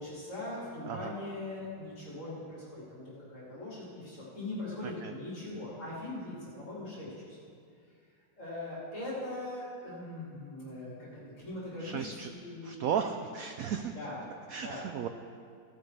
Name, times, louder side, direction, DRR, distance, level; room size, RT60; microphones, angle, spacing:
voice 1, 0.0-7.1 8.4-12.9 13.9-14.2 14.6-14.8, left 1 dB, 40° left, -9 dB, 3.5 m, -41 dB
voice 2, 4.8-5.1 11.8-12.3 12.6-13.9 14.5-15.1, right 7 dB, 85° right, 7 dB, 0.7 m, -35 dB
16.0 x 11.5 x 3.4 m, 2.3 s
omnidirectional pair, 2.0 m